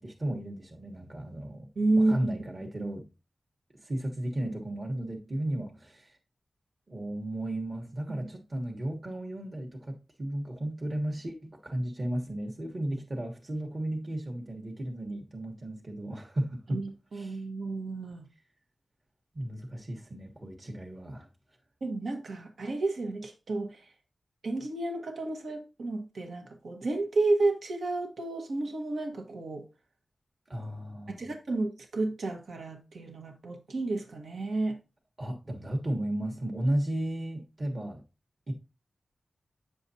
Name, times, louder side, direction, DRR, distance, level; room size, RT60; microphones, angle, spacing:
voice 1, 0.0-3.1 3.8-6.2 6.9-16.8 17.1-17.4 19.3-21.3 30.5-31.3 35.2-38.0 38.5-38.6, right 1 dB, 35° right, 1.2 m, -34 dB
voice 2, 1.8-2.1 8.2-8.3 16.7-18.3 21.8-23.8 24.4-29.6 31.2-34.8, right 2 dB, 80° right, 1.3 m, -31 dB
8.9 x 6.7 x 2.8 m
wide cardioid pair, 120°, 0 cm